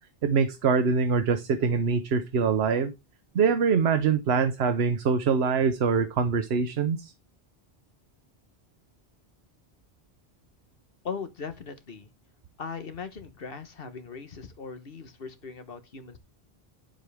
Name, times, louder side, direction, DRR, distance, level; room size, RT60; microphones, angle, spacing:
voice 1, 0.2-2.9 3.3-7.1, right 5 dB, 85° right, 1.0 m, -24 dB
voice 2, 11.0-12.1 12.6-16.2, left 5 dB, 65° left, 1.4 m, -39 dB
9.1 x 7.5 x 3.4 m
omnidirectional pair, 1.0 m